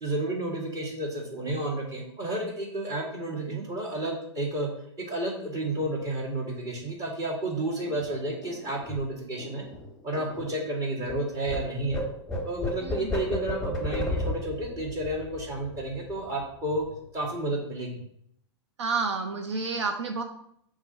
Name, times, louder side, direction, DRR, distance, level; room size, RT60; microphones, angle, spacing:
voice 1, 0.0-4.7 5.0-9.6 10.0-12.0 12.4-16.9 17.1-18.0, right 1 dB, 25° right, -1 dB, 2.3 m, -31 dB
sound 1, 7.8-11.2 11.4-16.4 16.7-17.0 17.2-17.8, left 1 dB, 5° left, 2.6 m, -35 dB
voice 2, 18.8-20.2, right 4 dB, 75° right, 5 dB, 0.7 m, -29 dB
5.9 x 3.8 x 5.5 m, 0.69 s
hypercardioid pair, 110°, 15 cm